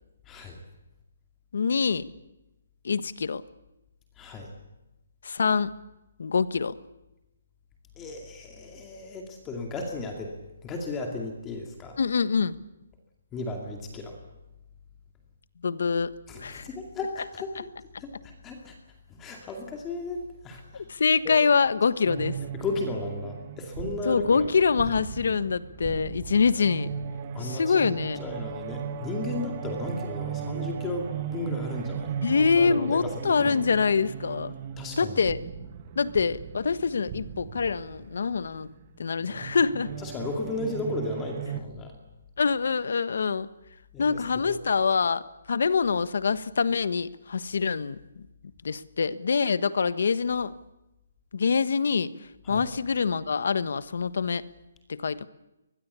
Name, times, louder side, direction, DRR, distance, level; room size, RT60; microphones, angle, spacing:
voice 1, 0.3-0.6 4.2-4.5 8.0-10.3 10.6-12.0 13.3-14.2 16.3-17.7 18.0-18.7 19.1-20.8 21.2-21.4 22.5-24.5 27.3-27.8 28.2-32.1 32.6-33.6 34.8-35.2 40.0-41.9 43.9-44.6 52.4-52.7, left 2 dB, 10° left, 2 dB, 2.4 m, -35 dB
voice 2, 1.5-2.0 2.8-3.4 5.2-5.7 6.2-6.8 12.0-12.6 15.6-16.1 16.4-16.7 20.7-22.4 24.0-26.9 27.4-28.2 32.2-34.5 35.0-35.4 36.0-38.7 39.0-39.9 42.4-43.5 44.0-45.2 45.5-48.0 48.6-50.5 51.3-52.1 52.5-54.4 54.9-55.3, left 5 dB, 60° left, 15 dB, 1.3 m, -25 dB
sound 1, 22.0-41.6, right 8 dB, 25° right, 1.3 m, -37 dB
24.0 x 20.5 x 8.3 m, 0.94 s
hypercardioid pair, 175°, 0 cm